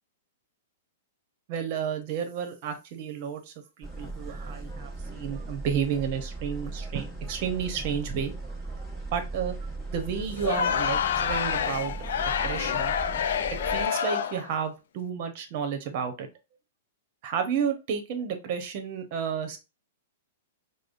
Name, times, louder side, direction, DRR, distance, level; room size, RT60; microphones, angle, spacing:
voice 1, 1.5-8.3 9.1-9.5 9.9-12.9 13.7-16.3 17.2-19.6, right 7 dB, 50° right, 6 dB, 0.9 m, -31 dB
sound 1, 3.8-13.9, right 3 dB, ahead, 1.2 m, -38 dB
Crowd, 10.3-14.5, left 8 dB, 65° left, 0.3 m, -28 dB
4.8 x 2.1 x 2.5 m, 0.27 s
hypercardioid pair, 115°, 0 cm